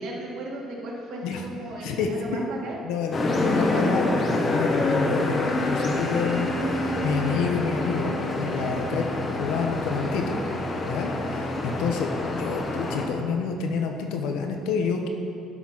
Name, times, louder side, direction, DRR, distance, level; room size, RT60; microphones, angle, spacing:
voice 1, 0.0-2.8 8.5-8.8, right 2 dB, 70° right, -2 dB, 1.7 m, -36 dB
voice 2, 2.8-10.4 10.8-15.1, left 5 dB, 85° left, 4 dB, 0.9 m, -28 dB
sound 1, 3.1-13.1, left 2 dB, 35° left, 1.0 m, -27 dB
11.0 x 4.0 x 5.8 m, 2.6 s
cardioid pair, 115°, 0 cm